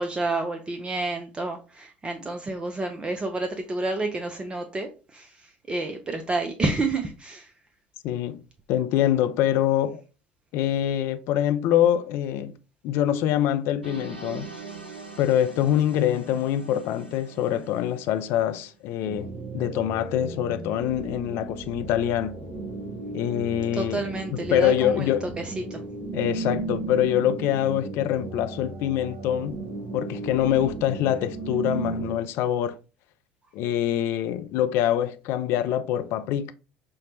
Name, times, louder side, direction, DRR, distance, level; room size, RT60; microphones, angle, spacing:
voice 1, 0.0-7.5 23.7-25.1 25.4-25.8, right 2 dB, 20° right, 0.4 m, -29 dB
voice 2, 8.0-8.4 8.7-10.0 10.5-12.5 12.8-14.5 15.2-19.3 19.5-22.3 23.1-24.0 24.3-25.3 26.1-29.6 29.9-32.8 33.5-36.5, left 11 dB, 50° left, 0.3 m, -24 dB
sound 1, 13.8-18.7, right 5 dB, 90° right, 0.5 m, -43 dB
sound 2, 19.0-32.2, right 2 dB, 45° right, 0.8 m, -35 dB
5.6 x 2.1 x 2.6 m
figure-of-eight pair, 65°, 5 cm